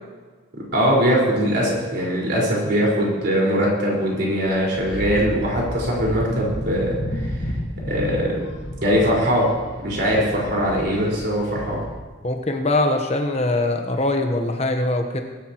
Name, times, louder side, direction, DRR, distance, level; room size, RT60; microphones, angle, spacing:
voice 1, 0.7-7.5 7.9-8.4 8.8-9.5 9.8-11.8, equal, 55° right, -4 dB, 4.7 m, -21 dB
sound 1, 4.5-12.0, equal, 55° left, 1.4 m, -32 dB
voice 2, 12.2-15.2, left 2 dB, 30° left, 4 dB, 1.0 m, -22 dB
22.0 x 11.5 x 3.0 m, 1.4 s
head